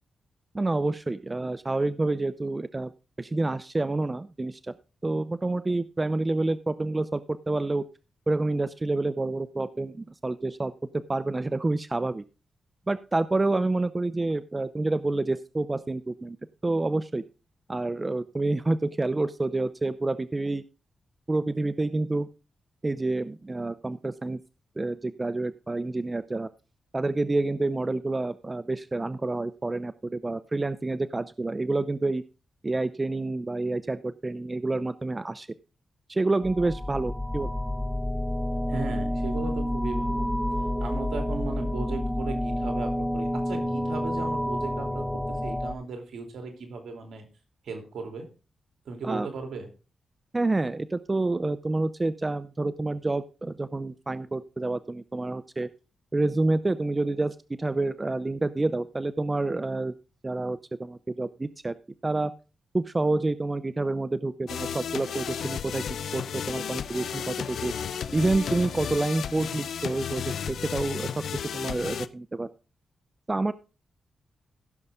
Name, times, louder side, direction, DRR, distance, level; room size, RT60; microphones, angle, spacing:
voice 1, 0.5-2.9 3.2-4.7 5.0-7.8 8.3-10.7 11.1-12.2 12.9-16.4 16.6-17.2 17.7-20.6 21.3-22.3 22.8-24.4 24.8-26.5 26.9-32.2 32.6-35.5 36.1-37.5 49.0-49.3 50.3-55.7 56.1-59.9 60.2-61.7 62.0-62.3 62.7-67.7 68.1-70.2 70.5-71.2 71.5-72.5 73.3-73.5, right 2 dB, 25° right, 15 dB, 0.5 m, -28 dB
sound 1, 36.4-45.7, left 1 dB, ahead, 1.1 m, -29 dB
voice 2, 38.7-40.3 40.8-47.2 47.6-48.3 48.9-49.7, right 4 dB, 75° right, 4 dB, 3.0 m, -36 dB
sound 2, 64.5-72.1, left 8 dB, 80° left, 0.6 m, -33 dB
15.5 x 6.6 x 3.6 m, 0.32 s
cardioid pair, 65°, 0 cm